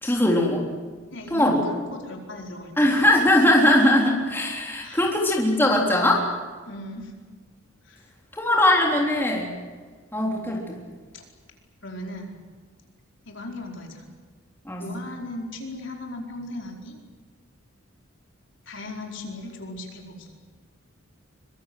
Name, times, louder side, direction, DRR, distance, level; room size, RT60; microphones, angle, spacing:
voice 1, 0.0-0.7 1.3-1.6 2.8-6.3 8.3-9.5 10.1-10.8 14.7-14.9, left 1 dB, 10° left, -1 dB, 3.6 m, -20 dB
voice 2, 1.1-2.7 4.8-5.1 6.7-7.1 7.8-8.1 11.1-11.2 11.8-12.4 13.3-14.0 14.8-17.0 18.7-20.3, left 1 dB, 60° left, 1 dB, 4.6 m, -37 dB
25.0 x 23.5 x 7.9 m, 1.5 s
head